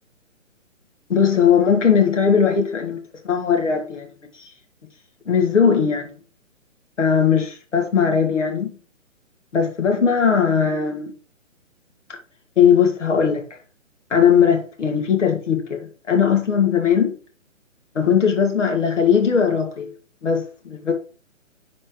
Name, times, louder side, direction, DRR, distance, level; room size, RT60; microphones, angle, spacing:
voice 1, 1.1-3.0 3.2-4.5 5.3-6.2 7.0-8.7 9.5-11.1 12.6-13.6 14.1-17.1 17.9-19.9 20.2-20.9, left 7 dB, 65° left, 2.2 m, -19 dB
10.5 x 4.3 x 3.1 m
figure-of-eight pair, 140°, 39 cm